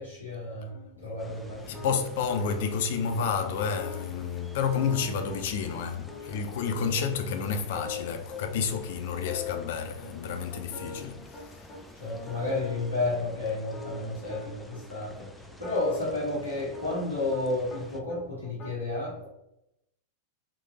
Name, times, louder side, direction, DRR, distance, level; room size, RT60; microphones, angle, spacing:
voice 1, 0.0-1.9 12.0-19.3, left 2 dB, 85° left, 1.4 m, -32 dB
sound 1, 0.7-2.8 3.1-3.2 3.5-5.8 6.1-8.4 8.7-8.8 9.1-9.7 10.0-11.8 12.1-14.8 15.5-17.8 18.1-18.7, left 5 dB, 30° left, 0.9 m, -43 dB
sound 2, 1.2-18.0, left 1 dB, 5° left, 0.5 m, -50 dB
voice 2, 1.7-11.7, left 6 dB, 55° left, 0.6 m, -30 dB
3.7 x 3.2 x 3.5 m
figure-of-eight pair, 90°, 0 cm